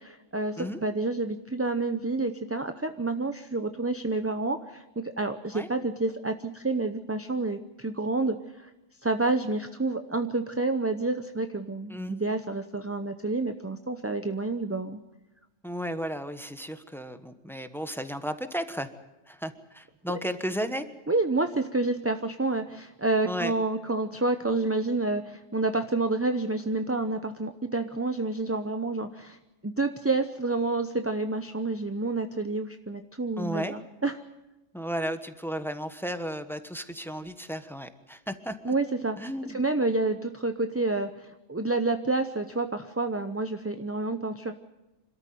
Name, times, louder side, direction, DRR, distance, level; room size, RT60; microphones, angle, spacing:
voice 1, 0.0-4.8 5.2-8.7 9.0-15.0 20.1-20.2 21.1-29.4 29.6-34.2 38.6-39.2 39.5-44.5, right 3 dB, 15° right, 7 dB, 0.6 m, -29 dB
voice 2, 15.6-18.9 19.3-20.9 23.2-23.5 33.4-33.7 34.7-38.7 39.2-39.6, equal, ahead, 9 dB, 1.1 m, -34 dB
26.0 x 13.5 x 9.3 m, 0.99 s
omnidirectional pair, 1.3 m